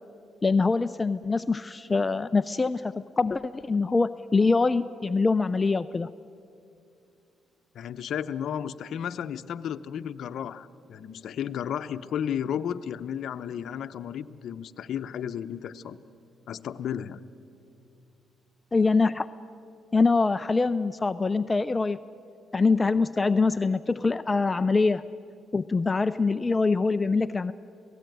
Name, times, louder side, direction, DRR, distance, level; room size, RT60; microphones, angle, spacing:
voice 1, 0.4-6.1 18.7-19.3 19.9-22.0 22.5-25.0 25.5-27.5, left 4 dB, 25° left, 12 dB, 0.5 m, -24 dB
voice 2, 7.7-16.0 16.5-17.2, left 9 dB, 70° left, 11 dB, 0.8 m, -33 dB
27.0 x 18.0 x 9.3 m, 2.6 s
cardioid pair, 90°, 0 cm